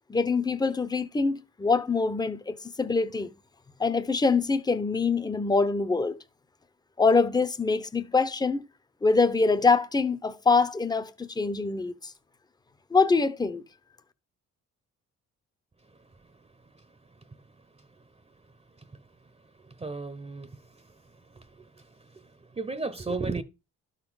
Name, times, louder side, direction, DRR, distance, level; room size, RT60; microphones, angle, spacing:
voice 1, 0.1-3.3 3.8-6.2 7.0-8.7 9.0-12.1 12.9-13.6, left 4 dB, 15° left, 0.8 m, -24 dB
voice 2, 19.8-20.5 22.6-23.4, right 3 dB, 20° right, 0.9 m, -32 dB
12.0 x 4.1 x 6.3 m
cardioid pair, 90°, 30 cm